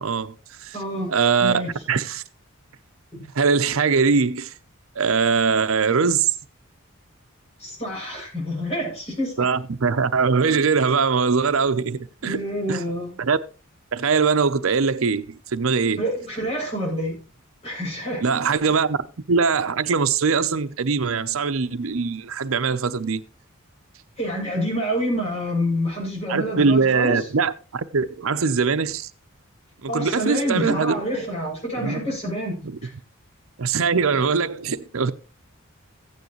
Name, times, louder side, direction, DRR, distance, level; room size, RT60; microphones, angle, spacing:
voice 1, 0.0-0.8 1.1-1.6 1.9-2.2 3.3-4.5 4.9-6.3 9.4-12.4 12.7-12.8 13.2-13.4 13.9-16.1 18.2-19.0 19.3-23.2 26.3-29.1 29.8-30.9 31.8-32.0 32.6-32.8 33.6-35.1, right 5 dB, 75° right, 0.7 m, -22 dB
voice 2, 0.7-1.1 1.4-1.7 7.6-9.5 12.2-13.1 16.0-17.2 17.6-18.2 24.2-27.2 29.9-32.9, equal, 30° left, 7.4 m, -27 dB
15.0 x 9.5 x 3.1 m
head